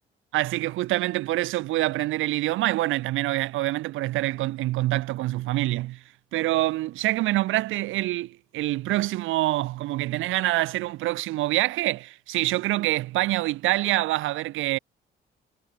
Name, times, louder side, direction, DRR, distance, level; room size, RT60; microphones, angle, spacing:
voice 1, 0.3-6.0 6.3-14.8, right 17 dB, 85° right, 0.7 m, -26 dB
cardioid pair, 90°, 20 cm